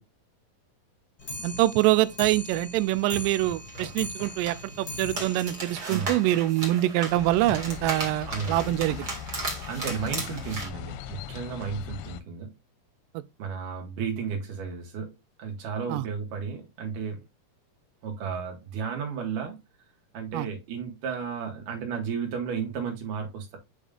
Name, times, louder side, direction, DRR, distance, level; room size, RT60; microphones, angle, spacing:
Clock, 1.2-6.7 7.0-7.1 7.4-7.5 7.8-7.9 8.2-8.3 9.0-9.1 9.8-9.9 10.6-10.7, left 1 dB, 35° left, 1.9 m, -40 dB
voice 1, 1.4-9.1 13.1-13.2 15.9-16.1 20.3-20.5, right 16 dB, 80° right, 2.0 m, -25 dB
sound 1, 2.8-10.7, right 2 dB, 35° right, 2.1 m, -37 dB
voice 2, 5.8-6.2 8.3-8.6 9.7-12.5 13.4-15.1 15.4-17.2 18.0-19.6 20.1-23.6, right 6 dB, 65° right, 3.2 m, -33 dB
sound 2, 7.1-12.2, left 9 dB, 90° left, 2.4 m, -40 dB
8.4 x 5.3 x 2.5 m
omnidirectional pair, 4.2 m